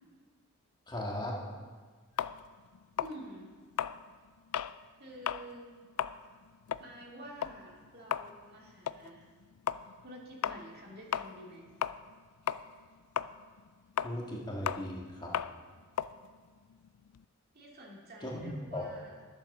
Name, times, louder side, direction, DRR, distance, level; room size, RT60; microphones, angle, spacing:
voice 1, 0.9-1.4 14.0-15.3 18.2-18.8, left 1 dB, 20° left, -2 dB, 1.7 m, -37 dB
sound 1, 2.2-4.8 5.1-5.5 5.8-12.2 12.5-17.2, left 9 dB, 80° left, 0.4 m, -36 dB
voice 2, 3.0-3.5 5.0-5.7 6.8-9.2 10.0-11.7 17.5-19.3, right 1 dB, 45° right, -2 dB, 2.3 m, -49 dB
12.0 x 7.9 x 6.7 m, 1.5 s
head